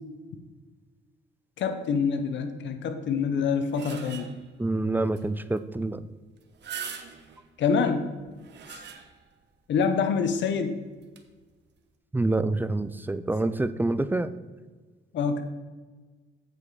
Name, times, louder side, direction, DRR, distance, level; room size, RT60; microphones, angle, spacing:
voice 1, 1.6-4.3 7.6-8.1 8.7-8.8 9.7-10.8 15.1-15.4, left 5 dB, 65° left, 8 dB, 0.9 m, -26 dB
sound 1, 3.4-4.5 5.2-5.3 5.6-5.7 6.4-7.5 8.2-9.4 9.8-9.9 11.0-11.2, right 7 dB, 60° right, 1.0 m, -41 dB
voice 2, 4.6-6.0 12.1-14.3, right 2 dB, 10° right, 13 dB, 0.4 m, -27 dB
8.1 x 5.2 x 4.7 m, 1.3 s
cardioid pair, 90°, 20 cm